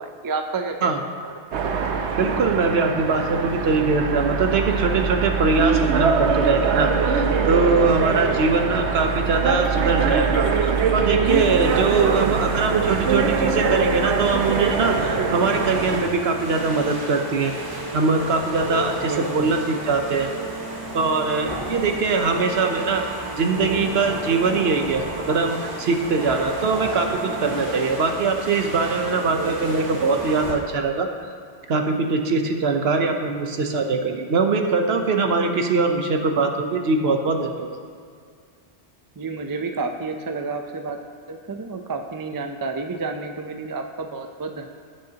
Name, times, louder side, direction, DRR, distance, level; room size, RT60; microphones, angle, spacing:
voice 1, 0.0-1.3 12.1-12.6 19.0-19.5 29.3-29.5 39.2-41.0 41.3-44.7, right 4 dB, 30° right, 5 dB, 0.4 m, -30 dB
sound 1, 1.5-16.0, right 5 dB, 85° right, 1.0 m, -23 dB
voice 2, 2.2-17.5 17.9-20.3 20.9-23.0 23.4-31.1 31.7-37.7, right 4 dB, 65° right, 4 dB, 1.0 m, -22 dB
sound 2, 9.5-16.4, left 3 dB, 40° left, 0.4 m, -37 dB
sound 3, 11.3-30.5, right 1 dB, 50° right, 1.9 m, -32 dB
16.5 x 6.4 x 2.9 m, 2.2 s
omnidirectional pair, 1.1 m